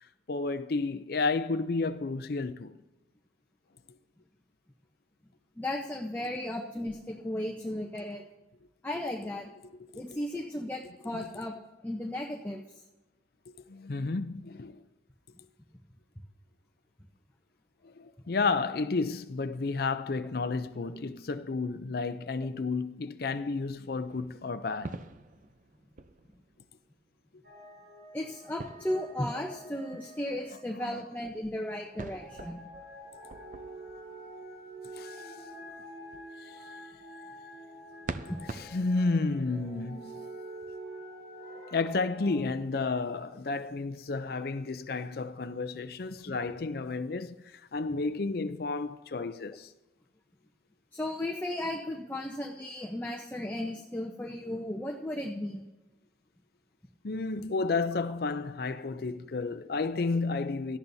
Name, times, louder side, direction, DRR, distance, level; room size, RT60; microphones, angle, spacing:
voice 1, 0.3-2.8 9.9-10.0 11.1-11.3 13.5-14.8 17.8-25.0 30.8-31.0 35.0-35.3 36.4-36.6 38.5-40.3 41.7-49.7 57.0-60.8, left 3 dB, 60° left, 0.5 m, -32 dB
voice 2, 5.6-8.2 8.8-9.5 9.9-11.5 11.8-12.6 28.1-32.7 38.3-38.4 46.3-46.4 49.5-49.6 50.9-55.6, left 1 dB, 10° left, 0.8 m, -35 dB
sound 1, 24.1-26.9 28.6-29.7 31.9-34.7 38.0-38.9, right 3 dB, 45° right, 0.5 m, -44 dB
sound 2, 27.4-31.2 31.9-42.5, right 1 dB, 70° right, 3.4 m, -47 dB
17.5 x 12.5 x 2.7 m
head